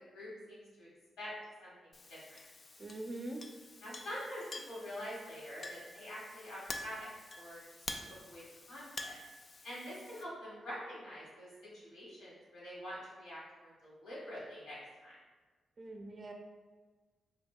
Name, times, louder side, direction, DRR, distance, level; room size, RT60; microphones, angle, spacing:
voice 1, 0.1-0.9 1.2-1.3 1.6-2.4 3.8-7.6 8.0-8.4 8.7-9.1 9.6-11.5 11.7-14.8 15.0-15.2, equal, 80° left, -8 dB, 1.4 m, -46 dB
Chink clink, 1.9-10.2, left 2 dB, 50° left, 0.3 m, -48 dB
voice 2, 2.8-3.4 15.8-16.3, right 2 dB, 45° right, 2 dB, 0.5 m, -43 dB
3.8 x 2.7 x 2.2 m, 1.3 s
supercardioid pair, 50°, 0 cm